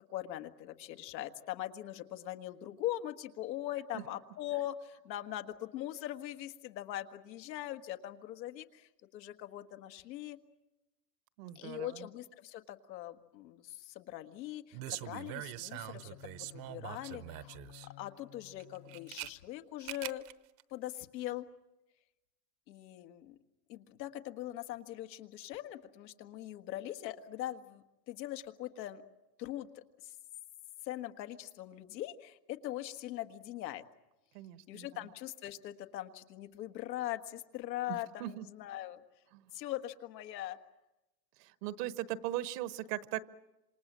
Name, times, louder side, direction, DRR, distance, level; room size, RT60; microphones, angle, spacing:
voice 1, 0.1-10.4 11.6-17.6 17.8-20.2 20.7-21.5 22.7-23.4 23.7-29.0 29.4-30.1 30.8-33.8 34.7-39.0 39.5-40.6, left 13 dB, 80° left, 8 dB, 1.8 m, -41 dB
voice 2, 11.4-12.0 34.3-34.9 37.9-38.4 39.3-39.4 41.4-43.2, right 14 dB, 70° right, 14 dB, 1.3 m, -39 dB
sound 1, 14.7-17.9 18.6-19.3 19.8-20.3 20.6-20.7, right 15 dB, 40° right, 0.9 m, -43 dB
Bowed string instrument, 15.3-19.6, left 19 dB, 65° left, 2.6 m, -56 dB
27.0 x 27.0 x 7.5 m, 1.0 s
supercardioid pair, 135°, 50 cm